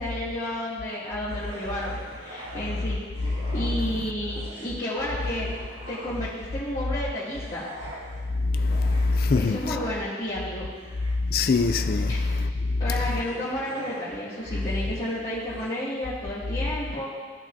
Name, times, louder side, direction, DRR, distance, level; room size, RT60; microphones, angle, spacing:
voice 1, 0.0-5.5 5.9-7.6 9.3-10.7 12.1-12.2 12.8-17.1, equal, 30° left, 2.3 m, -31 dB
sound 1, 1.2-3.9 4.2-6.6 7.1-15.7, equal, 70° right, 2.4 m, -45 dB
voice 2, 8.4-9.8 11.2-13.1, left 3 dB, 50° left, 0.3 m, -23 dB
15.0 x 5.9 x 2.7 m
head